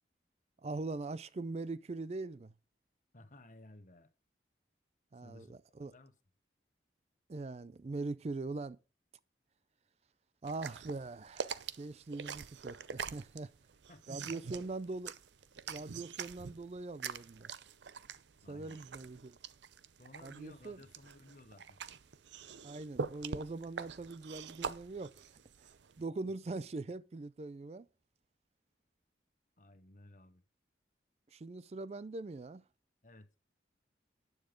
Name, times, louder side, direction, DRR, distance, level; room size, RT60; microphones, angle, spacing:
voice 1, 0.6-2.5 5.1-5.9 7.3-8.8 10.4-13.5 14.1-15.1 15.7-17.5 18.5-19.4 20.2-20.8 22.6-25.1 26.0-27.9 31.3-32.6, right 3 dB, 35° right, 0.4 m, -42 dB
voice 2, 3.1-4.1 5.2-5.5 5.8-6.1 13.9-14.6 18.4-19.0 20.0-21.8 29.6-30.4 33.0-33.3, left 2 dB, 45° left, 1.0 m, -56 dB
sound 1, 10.4-26.0, right 6 dB, 80° right, 0.6 m, -44 dB
9.6 x 7.6 x 5.1 m
head